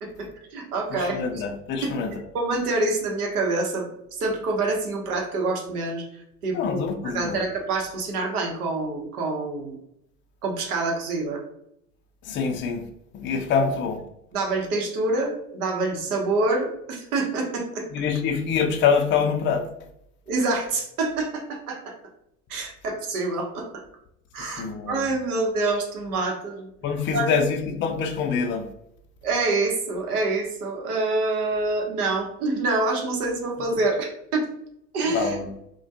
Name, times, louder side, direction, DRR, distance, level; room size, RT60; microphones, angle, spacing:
voice 1, 0.0-1.4 1.8-1.9 2.3-3.9 4.2-6.0 6.4-9.8 10.4-11.4 14.3-17.9 20.3-21.9 22.5-23.7 24.3-26.7 27.1-27.4 29.2-34.5 34.9-35.4, right 3 dB, 85° right, 1 dB, 0.8 m, -26 dB
voice 2, 1.0-2.1 6.5-7.4 12.3-12.8 13.1-14.0 17.9-19.6 24.6-25.0 26.8-28.7 35.1-35.5, left 6 dB, 30° left, 4 dB, 0.4 m, -25 dB
2.3 x 2.2 x 2.6 m, 0.77 s
hypercardioid pair, 90°, 43 cm